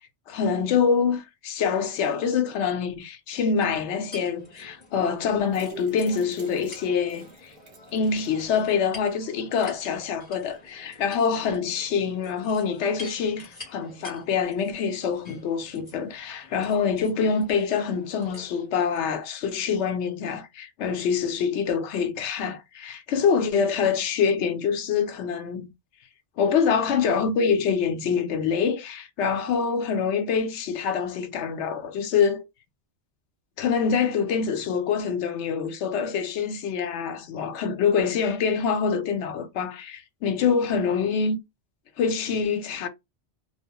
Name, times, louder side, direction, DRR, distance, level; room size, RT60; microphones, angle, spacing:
voice 1, 0.3-7.5 7.9-25.7 26.4-32.4 33.6-41.4 42.0-42.9, left 6 dB, 85° left, 0.9 m, -25 dB
sound 1, 3.6-19.0, left 2 dB, 40° left, 1.3 m, -48 dB
sound 2, 5.5-8.6 9.0-9.1 9.4-9.5, right 6 dB, 50° right, 1.0 m, -47 dB
2.4 x 2.2 x 2.7 m
omnidirectional pair, 1.2 m